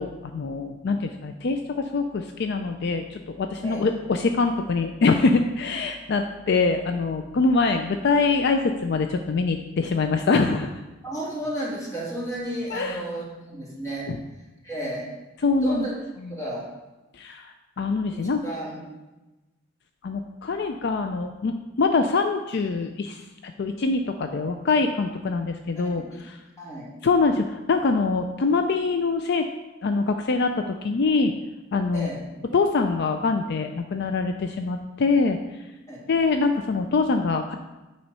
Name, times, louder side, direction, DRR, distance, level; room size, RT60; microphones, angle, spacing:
voice 1, 0.0-10.7 12.7-13.0 14.1-14.2 15.4-15.9 16.2-16.3 17.2-17.5 17.8-18.4 20.0-26.4 27.0-29.5 29.8-31.3 31.7-32.1 32.5-35.4 36.1-37.5, left 4 dB, 55° left, 6 dB, 0.4 m, -24 dB
voice 2, 11.0-14.3 14.6-15.1 15.6-15.9 16.3-16.7 18.1-18.8 26.0-26.2 26.6-26.9 31.9-32.2 35.9-36.1, right 1 dB, 15° left, -5 dB, 2.1 m, -33 dB
8.7 x 4.3 x 5.5 m, 1.1 s
head